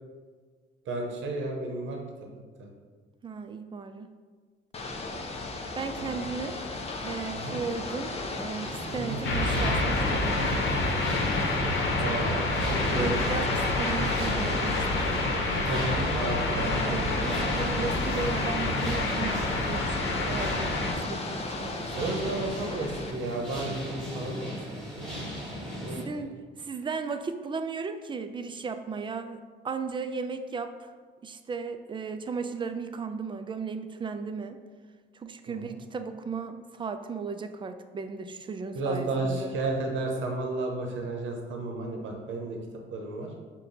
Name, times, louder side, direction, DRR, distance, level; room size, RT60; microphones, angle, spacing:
voice 1, 0.9-2.0 2.6-2.7 6.0-6.2 7.3-7.6 9.0-9.2 11.9-13.2 15.7-17.4 21.6-25.2 25.8-26.3 35.5-35.7 38.7-42.6 42.9-43.3, right 2 dB, 75° right, 2 dB, 0.8 m, -33 dB
voice 2, 3.2-4.1 5.7-6.6 7.0-11.0 12.0-12.5 12.9-16.0 16.6-22.3 25.9-26.3 26.6-30.9 31.2-34.6 35.1-39.5, right 5 dB, 25° right, 8 dB, 0.3 m, -36 dB
Ocean / Boat Water vehicle, 4.7-23.1, left 2 dB, 30° left, 0.6 m, -37 dB
sound 1, 8.6-26.0, equal, ahead, 1.4 m, -38 dB
sound 2, 9.2-20.9, left 2 dB, 75° left, 0.8 m, -28 dB
5.6 x 2.2 x 3.9 m, 1.5 s
cardioid pair, 90°, 20 cm